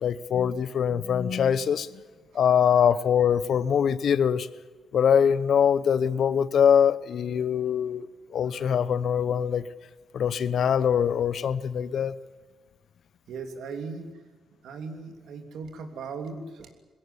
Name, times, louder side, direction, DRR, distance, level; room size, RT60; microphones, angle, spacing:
voice 1, 0.0-2.0 2.3-4.5 4.9-9.6 10.1-12.2, left 8 dB, 60° left, 16 dB, 0.9 m, -23 dB
voice 2, 13.3-14.1 14.6-16.7, right 4 dB, 75° right, 6 dB, 3.1 m, -37 dB
21.5 x 17.0 x 9.9 m, 1.4 s
cardioid pair, 140°, 0 cm